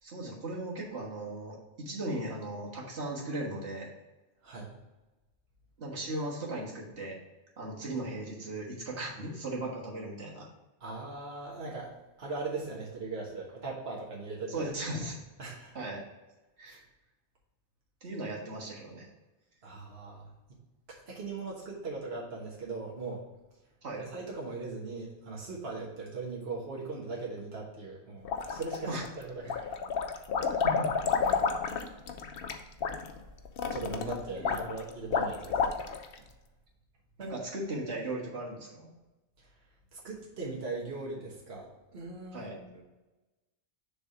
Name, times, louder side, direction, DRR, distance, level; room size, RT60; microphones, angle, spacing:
voice 1, 0.0-3.9 5.8-7.2 7.6-10.5 14.5-15.2 15.7-16.0 16.6-16.8 18.0-19.1 23.8-24.0 28.9-29.0 30.6-30.7 34.3-34.5 37.2-38.9 42.3-42.6, right 1 dB, 85° right, -3 dB, 1.8 m, -37 dB
voice 2, 10.8-11.9 12.2-14.6 15.4-15.7 16.7-16.8 19.6-20.3 20.9-23.2 24.0-28.9 29.2-29.7 31.2-31.5 33.7-35.7 37.2-37.3 39.9-42.8, right 3 dB, 65° right, -3 dB, 1.5 m, -39 dB
sound 1, 28.2-29.1 29.4-36.1, left 5 dB, 65° left, 0.8 m, -30 dB
6.9 x 3.5 x 4.8 m, 1.1 s
omnidirectional pair, 1.1 m